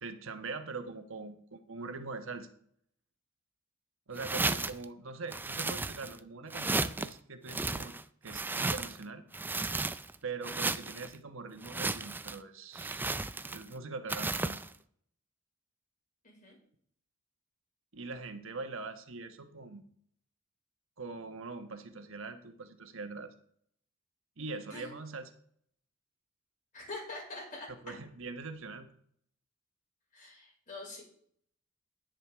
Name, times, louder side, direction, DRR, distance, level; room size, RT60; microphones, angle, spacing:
voice 1, 0.0-2.5 4.1-7.9 8.2-9.2 10.2-13.1 13.5-14.6 17.9-19.8 21.0-23.3 24.4-25.3 27.7-28.9, right 4 dB, 65° right, 7 dB, 1.2 m, -42 dB
sound 1, 4.2-4.8 5.3-6.2 6.5-7.1 7.5-9.0 9.3-10.2 10.4-11.1 11.6-12.4 12.8-13.7 14.1-14.7, right 3 dB, 10° right, 0.3 m, -34 dB
voice 2, 16.2-16.5 24.7-24.9 26.7-28.0 30.1-31.0, left 2 dB, 40° left, -3 dB, 5.5 m, -44 dB
10.5 x 10.0 x 3.6 m, 0.64 s
head